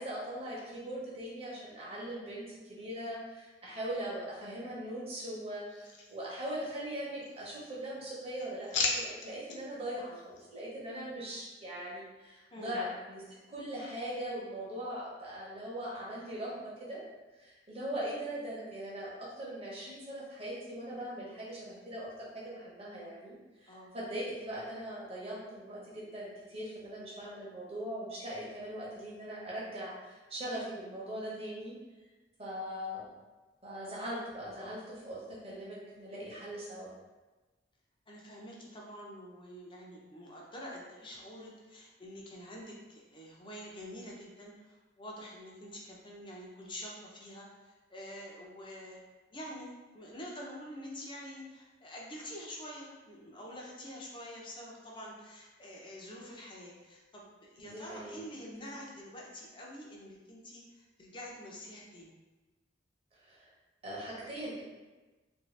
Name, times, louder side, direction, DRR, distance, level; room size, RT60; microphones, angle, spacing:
voice 1, 0.0-17.0 17.4-23.4 23.6-31.7 32.4-33.1 33.6-36.9 57.6-58.2 63.2-63.5 63.8-64.6, right 1 dB, 35° right, -7 dB, 0.9 m, -40 dB
sound 1, 5.7-6.8 7.1-7.8 8.2-9.6 10.1-10.5, left 4 dB, 75° left, 0.5 m, -37 dB
voice 2, 12.5-12.8 23.7-23.9 38.1-49.0 49.3-62.1, equal, 25° left, -3 dB, 0.6 m, -47 dB
2.9 x 2.7 x 3.2 m, 1.2 s
head